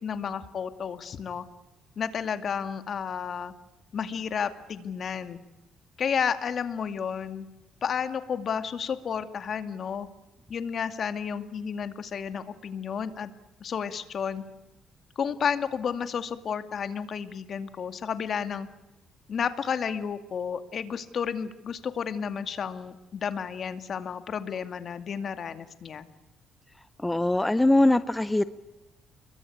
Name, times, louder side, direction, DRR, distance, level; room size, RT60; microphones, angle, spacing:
voice 1, 0.0-1.4 2.0-3.5 3.9-5.4 6.0-7.5 7.8-10.1 10.5-13.3 13.6-14.4 15.2-18.7 19.3-26.1, left 7 dB, 55° left, 9 dB, 2.3 m, -32 dB
voice 2, 27.0-28.4, left 1 dB, 10° left, 13 dB, 0.9 m, -22 dB
29.0 x 22.5 x 8.6 m, 0.97 s
cardioid pair, 90°, 0 cm